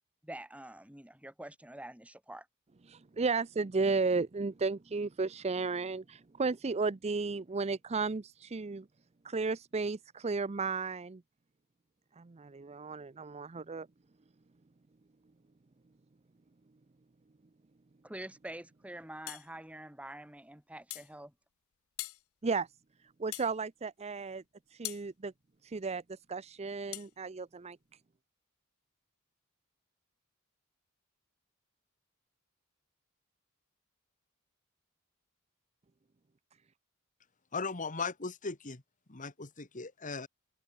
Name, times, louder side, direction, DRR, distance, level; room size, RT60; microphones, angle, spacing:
voice 1, 0.2-2.5 18.0-21.3, right 1 dB, 5° right, 2.4 m, -46 dB
voice 2, 2.9-8.9 9.2-11.2 12.2-13.9 22.4-22.7 23.2-24.4 24.7-25.3 25.6-27.8, right 4 dB, 30° right, 0.5 m, -34 dB
sound 1, 19.3-19.5 20.9-21.1 22.0-22.2 23.3-23.5 24.8-25.1 26.9-27.1, left 20 dB, 70° left, 0.4 m, -41 dB
voice 3, 37.5-38.8 39.1-40.3, left 4 dB, 35° left, 1.7 m, -38 dB
open air
head